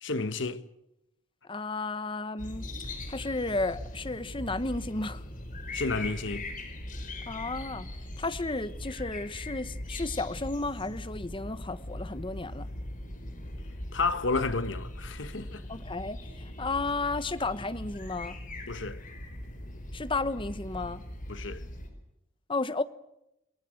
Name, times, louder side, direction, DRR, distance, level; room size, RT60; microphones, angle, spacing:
voice 1, 0.0-0.6 5.7-6.5 13.9-15.6 18.7-19.0 21.3-21.6, left 3 dB, 60° left, 1.4 m, -31 dB
voice 2, 1.5-2.7 3.1-5.2 7.3-7.9 8.2-12.7 15.7-18.4 19.9-21.0 22.5-22.8, left 3 dB, 25° left, 1.1 m, -33 dB
sound 1, 2.4-21.9, left 1 dB, 40° left, 5.1 m, -40 dB
29.0 x 20.5 x 7.9 m
head